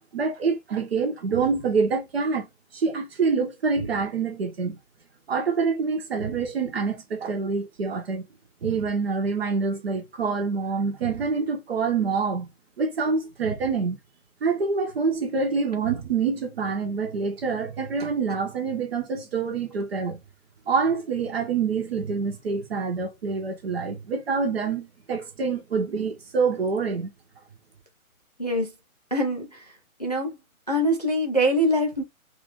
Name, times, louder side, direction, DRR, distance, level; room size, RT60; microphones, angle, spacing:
voice 1, 0.1-2.5 2.7-4.8 5.3-8.2 8.6-12.5 12.8-14.0 14.4-20.2 20.7-27.1, right 5 dB, 45° right, 1.1 m, -26 dB
voice 2, 28.4-28.7 29.1-29.7 30.0-30.4 30.7-32.0, equal, 30° left, 0.4 m, -24 dB
3.3 x 2.6 x 3.0 m
figure-of-eight pair, 145°, 43 cm